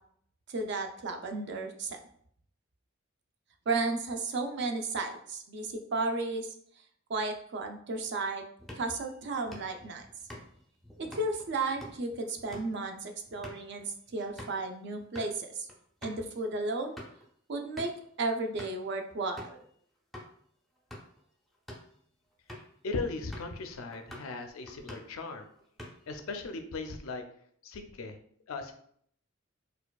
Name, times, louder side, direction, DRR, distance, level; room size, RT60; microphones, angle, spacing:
voice 1, 0.5-2.0 3.7-6.5 7.1-8.5 8.8-10.1 11.0-15.7 16.0-17.0 17.5-17.9 18.2-19.6, right 3 dB, 55° right, 5 dB, 0.4 m, -33 dB
sound 1, 8.6-14.6 15.0-15.3 15.7-15.8 16.0-16.2 16.7-17.3 17.8-18.1 18.6-18.9 19.4-19.6 20.1-20.3 20.8-21.2 21.5-21.9 22.5-22.8 23.3-23.6 23.9-24.4 24.7-25.2 25.6-26.2, equal, ahead, 0.5 m, -47 dB
voice 2, 22.8-25.5 26.1-27.2 27.6-28.1 28.5-28.7, left 3 dB, 75° left, 6 dB, 0.5 m, -37 dB
4.3 x 2.3 x 2.3 m, 0.63 s
head